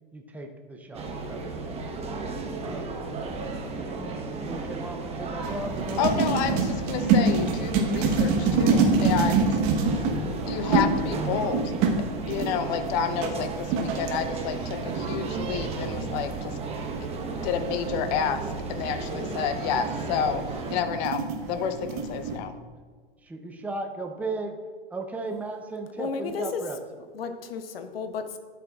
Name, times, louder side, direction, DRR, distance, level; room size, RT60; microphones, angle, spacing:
voice 1, 0.1-2.1 2.6-2.9 4.3-6.0 23.2-24.6 24.9-26.8, right 3 dB, 5° right, 3 dB, 0.7 m, -36 dB
sound 1, 0.9-20.8, right 3 dB, 20° right, 1.2 m, -34 dB
sound 2, 5.4-22.4, right 4 dB, 45° right, 1.2 m, -27 dB
voice 2, 6.0-9.6 10.5-11.7 12.3-16.6 17.4-22.5, left 7 dB, 50° left, 9 dB, 0.8 m, -30 dB
voice 3, 26.0-26.6 27.1-28.4, left 5 dB, 80° left, 8 dB, 1.0 m, -33 dB
12.5 x 6.8 x 2.4 m, 1.5 s
hypercardioid pair, 115°, 29 cm